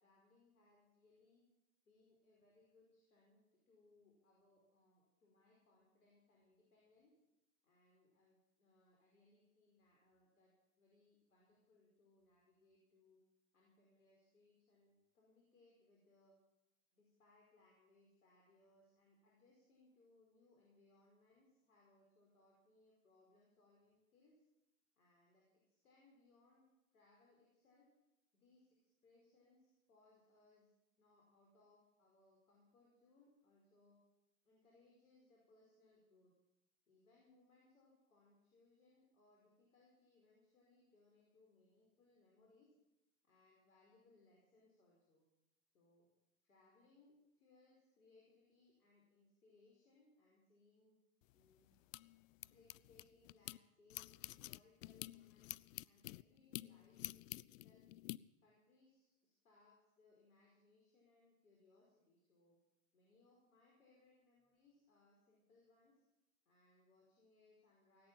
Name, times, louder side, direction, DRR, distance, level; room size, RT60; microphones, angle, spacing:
voice 1, 0.0-1.4 1.8-7.2 7.6-10.5 10.8-13.2 13.5-16.4 16.9-24.4 25.0-27.9 28.3-30.7 31.0-34.0 34.4-36.3 36.9-42.8 43.2-45.2 45.7-46.1 46.4-51.0 51.3-51.7 52.4-57.9 58.4-62.6 62.9-66.0 66.5-68.1, left 2 dB, 80° left, -3 dB, 5.3 m, -71 dB
sound 1, 51.2-53.6 53.9-58.2, left 17 dB, 65° left, 0.5 m, -50 dB
18.0 x 8.9 x 8.9 m, 0.91 s
hypercardioid pair, 100°, 42 cm